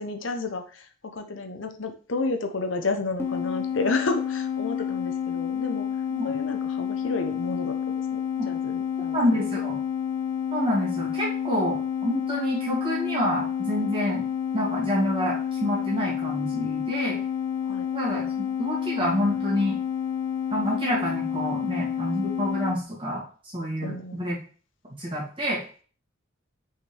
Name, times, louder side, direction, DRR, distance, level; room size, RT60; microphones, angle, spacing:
voice 1, 0.0-5.9 6.2-9.4 17.6-17.9 23.8-24.3, left 3 dB, 85° left, 6 dB, 0.9 m, -31 dB
sound 1, 3.2-22.8, left 8 dB, 10° left, 1.0 m, -29 dB
voice 2, 9.1-9.8 10.5-14.2 14.5-17.2 17.9-19.8 20.5-24.4 25.0-25.6, equal, 25° right, -5 dB, 2.5 m, -28 dB
5.8 x 5.6 x 3.4 m, 0.39 s
head